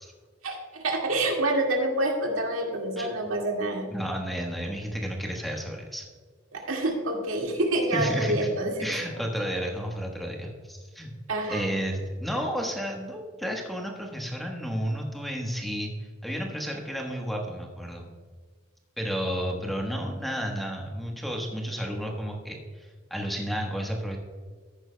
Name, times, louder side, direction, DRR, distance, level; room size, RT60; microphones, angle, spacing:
voice 1, 0.4-3.9 6.5-8.9 11.3-11.6, right 1 dB, 85° right, 0 dB, 2.0 m, -27 dB
voice 2, 3.9-6.1 7.9-8.5 8.8-11.1 11.5-18.1 19.0-24.2, equal, ahead, 0 dB, 1.2 m, -32 dB
14.0 x 10.5 x 2.2 m, 1.5 s
head